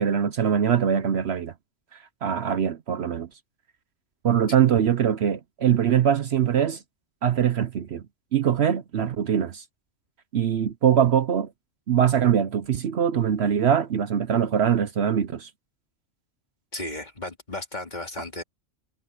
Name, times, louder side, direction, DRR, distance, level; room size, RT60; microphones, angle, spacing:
voice 1, 0.0-1.5 1.9-3.3 4.2-6.8 7.2-8.0 8.3-9.6 10.3-11.5 11.9-15.5, right 8 dB, 60° right, 1.0 m, -22 dB
voice 2, 16.7-18.4, left 1 dB, 35° left, 2.7 m, -34 dB
omnidirectional pair, 1.3 m